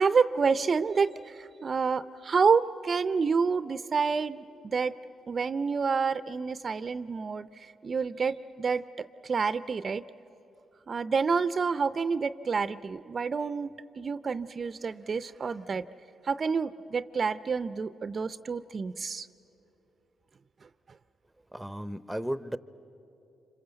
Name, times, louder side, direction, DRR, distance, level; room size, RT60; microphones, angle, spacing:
voice 1, 0.0-4.9 5.3-10.0 10.9-15.9 16.2-19.3, right 5 dB, 45° right, 14 dB, 0.5 m, -28 dB
voice 2, 21.5-22.6, equal, 5° right, 15 dB, 0.8 m, -34 dB
27.0 x 25.0 x 7.9 m, 2.9 s
supercardioid pair, 60°, 0 cm